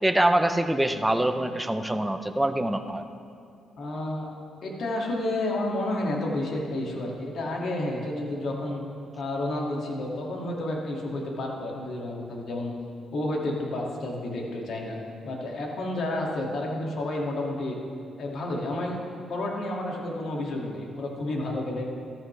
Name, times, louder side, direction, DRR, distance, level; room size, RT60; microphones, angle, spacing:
voice 1, 0.0-3.0, right 1 dB, 10° right, 8 dB, 0.7 m, -24 dB
voice 2, 3.8-4.3 4.6-8.8 9.2-12.7 13.1-15.0 15.2-17.8 18.2-21.9, left 1 dB, 60° left, -1 dB, 2.2 m, -30 dB
14.0 x 13.0 x 3.3 m, 2.5 s
cardioid pair, 90°, 0 cm